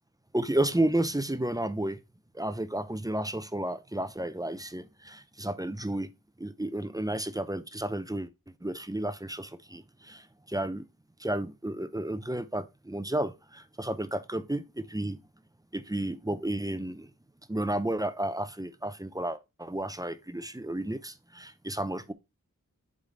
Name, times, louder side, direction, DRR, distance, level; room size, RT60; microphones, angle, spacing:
voice 1, 0.3-2.0 2.3-6.1 6.4-8.3 8.6-10.8 11.2-15.2 15.7-17.1 17.5-22.1, right 1 dB, 10° right, 0.6 m, -32 dB
7.3 x 3.8 x 3.7 m
wide cardioid pair, 40°, 34 cm